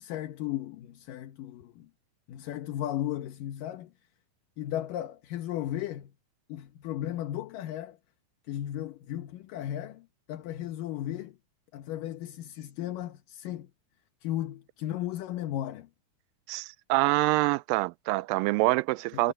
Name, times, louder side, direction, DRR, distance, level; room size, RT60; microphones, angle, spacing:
voice 1, 0.0-1.9 2.3-3.9 4.6-6.1 6.5-8.0 8.5-11.4 11.7-13.7 14.2-15.9 19.1-19.3, left 12 dB, 75° left, 2.8 m, -35 dB
voice 2, 16.5-19.3, right 20 dB, 90° right, 2.3 m, -26 dB
omnidirectional pair, 3.9 m